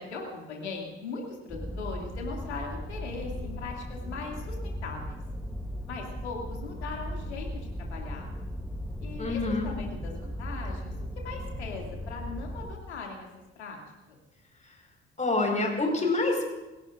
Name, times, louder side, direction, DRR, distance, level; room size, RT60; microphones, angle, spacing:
voice 1, 0.0-5.2 5.9-8.3 9.0-13.3 13.6-13.8 14.1-14.2, left 4 dB, 80° left, 0 dB, 2.5 m, -39 dB
sound 1, 1.5-12.8, equal, ahead, 1.4 m, -37 dB
voice 2, 9.2-9.7 15.2-16.5, left 2 dB, 20° left, 1 dB, 5.0 m, -26 dB
29.0 x 17.0 x 2.5 m, 1.1 s
figure-of-eight pair, 50°, 33 cm